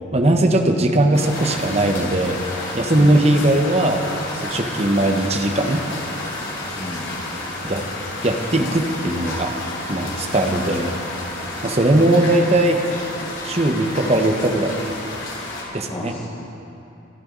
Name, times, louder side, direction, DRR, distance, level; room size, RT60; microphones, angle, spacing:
voice 1, 0.1-2.4 2.7-4.1 4.3-5.8 7.6-7.8 8.2-9.5 9.9-10.9 11.6-12.8 13.4-14.8 15.7-16.1, right 1 dB, 30° right, 4 dB, 1.1 m, -19 dB
sound 1, 1.1-15.6, left 2 dB, 65° left, 3.5 m, -30 dB
voice 2, 3.0-3.3 6.7-7.1 10.4-10.9 15.9-16.2, left 1 dB, 25° left, -6 dB, 1.6 m, -32 dB
26.5 x 11.5 x 4.0 m, 2.8 s
head